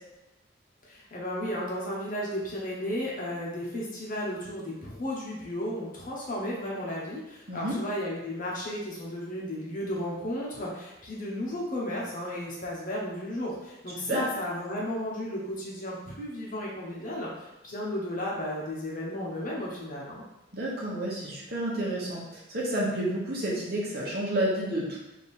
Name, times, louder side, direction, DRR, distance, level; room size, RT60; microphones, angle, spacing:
voice 1, 0.8-20.2, left 1 dB, 40° left, -4 dB, 0.9 m, -34 dB
voice 2, 20.5-25.0, right 1 dB, 50° right, -5 dB, 1.1 m, -30 dB
3.4 x 2.8 x 4.3 m, 0.98 s
head